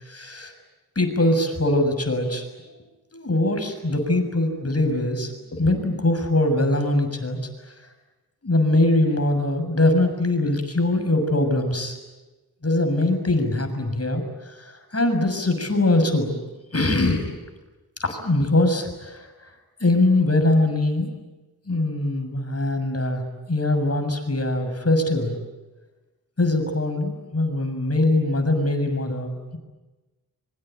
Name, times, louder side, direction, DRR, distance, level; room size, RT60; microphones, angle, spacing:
voice 1, 0.0-0.5 0.9-2.5 3.1-7.4 8.4-12.0 12.6-16.4 16.7-17.4 18.0-19.5 19.8-21.1 21.7-25.4 26.4-29.6, left 2 dB, 40° left, 7 dB, 6.8 m, -22 dB
26.0 x 24.0 x 9.2 m, 1.1 s
cardioid pair, 50°, 37 cm